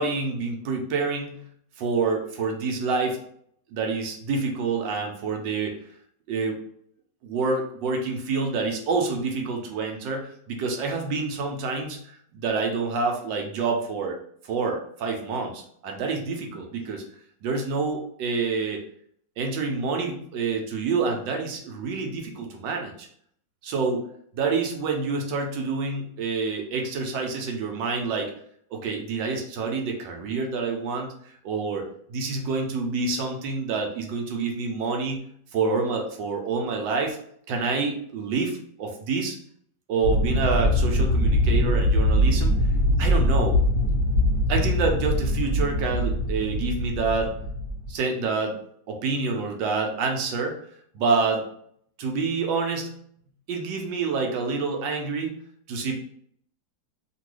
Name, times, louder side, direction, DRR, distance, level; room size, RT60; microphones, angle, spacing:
voice 1, 0.0-1.4 1.8-3.2 3.7-5.8 6.3-6.6 7.2-14.2 14.4-17.0 17.4-18.8 19.4-23.1 23.6-24.0 24.3-28.3 28.7-35.2 35.5-37.2 37.5-39.4 39.9-42.6 43.0-43.6 44.5-47.3 47.9-48.6 48.9-50.6 50.9-51.5 52.0-52.9 53.5-55.3 55.7-56.0, right 4 dB, 75° right, 3 dB, 1.2 m, -27 dB
sound 1, 40.0-47.9, left 1 dB, 45° left, 0.9 m, -22 dB
2.9 x 2.6 x 3.0 m, 0.65 s
omnidirectional pair, 2.1 m